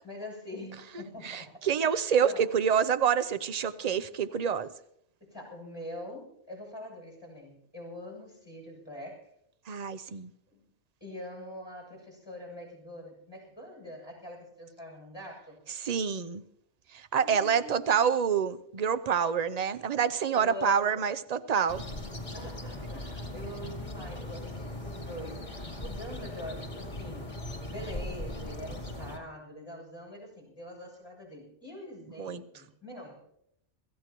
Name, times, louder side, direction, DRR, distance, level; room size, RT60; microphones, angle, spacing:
voice 1, 0.0-1.6 2.2-2.5 5.2-9.3 10.5-10.7 11.0-15.6 17.2-18.0 20.3-21.1 22.3-27.3 27.7-33.2, left 1 dB, 20° left, -2 dB, 7.4 m, -44 dB
voice 2, 1.2-4.7 9.7-10.3 15.8-16.4 16.9-21.8 32.2-32.4, right 7 dB, 45° right, 13 dB, 0.6 m, -27 dB
sound 1, 21.7-29.2, left 1 dB, 40° left, 2.7 m, -39 dB
26.5 x 15.0 x 3.0 m, 0.74 s
omnidirectional pair, 1.2 m